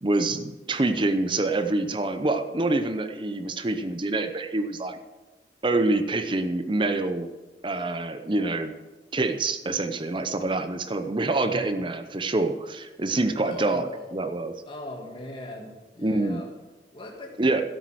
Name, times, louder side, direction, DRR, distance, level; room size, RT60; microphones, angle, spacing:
voice 1, 0.0-5.0 5.6-7.3 7.6-8.7 9.1-14.6 16.0-16.4 17.4-17.6, right 2 dB, 25° right, 9 dB, 0.7 m, -26 dB
voice 2, 11.3-11.7 13.4-14.1 14.7-16.5 16.9-17.4, left 2 dB, 30° left, 0 dB, 1.6 m, -39 dB
12.5 x 8.6 x 6.3 m, 1.2 s
head